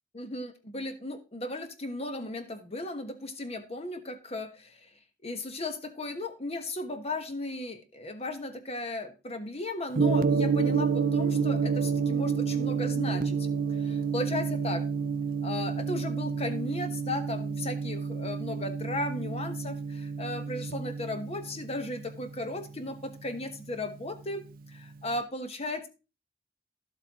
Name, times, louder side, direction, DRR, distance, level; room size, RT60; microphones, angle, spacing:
voice 1, 0.1-4.9 5.2-13.5 13.8-14.8 15.4-25.9, left 2 dB, 35° left, 9 dB, 1.2 m, -36 dB
Gong, 10.0-24.1, right 5 dB, 50° right, 0.5 m, -30 dB
11.5 x 8.1 x 2.9 m, 0.30 s
head